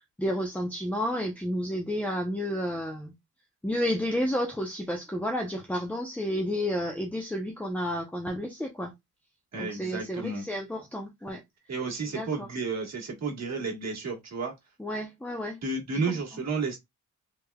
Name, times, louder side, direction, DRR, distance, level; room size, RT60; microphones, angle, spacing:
voice 1, 0.2-3.1 3.6-8.9 9.6-11.4 12.1-12.5 14.8-15.6 16.1-16.2, equal, 5° left, 0.7 m, -31 dB
voice 2, 9.5-10.4 11.7-14.5 15.6-16.8, right 4 dB, 55° right, 1.7 m, -32 dB
3.4 x 3.4 x 2.2 m
cardioid pair, 95°, 32 cm